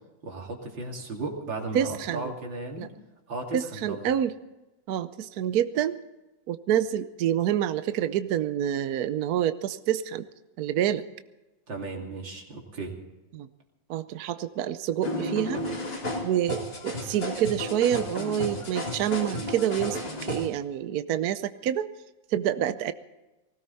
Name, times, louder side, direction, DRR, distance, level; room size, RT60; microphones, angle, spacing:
voice 1, 0.2-2.9 3.3-4.1 11.7-12.9, right 2 dB, 90° right, 0 dB, 3.5 m, -35 dB
voice 2, 1.7-2.3 2.8-2.9 3.5-4.3 4.9-6.0 6.5-10.2 10.6-11.1 13.3-13.5 13.9-15.7 16.2-21.9 22.3-22.9, right 10 dB, 65° right, 12 dB, 1.1 m, -27 dB
sound 1, 15.0-20.5, left 1 dB, 65° left, 4.3 m, -33 dB
20.0 x 17.0 x 4.1 m, 1.1 s
omnidirectional pair, 2.0 m